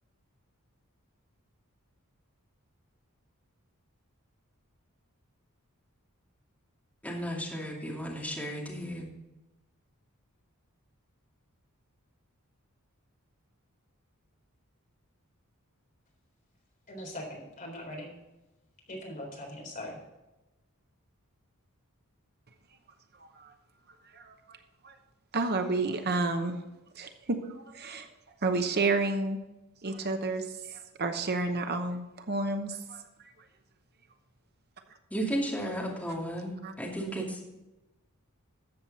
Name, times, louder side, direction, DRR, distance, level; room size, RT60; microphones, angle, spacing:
voice 1, 7.0-9.1 35.1-37.5, equal, 5° left, -3 dB, 2.4 m, -34 dB
voice 2, 16.9-18.1 18.9-20.0, left 1 dB, 40° left, 0 dB, 3.8 m, -41 dB
voice 3, 23.2-23.5 24.1-24.6 24.8-25.0 25.3-26.6 26.9-28.1 28.4-29.4 29.8-33.0 36.1-36.2 36.6-36.7, right 3 dB, 45° right, 7 dB, 0.9 m, -31 dB
13.5 x 7.8 x 4.1 m, 1.0 s
head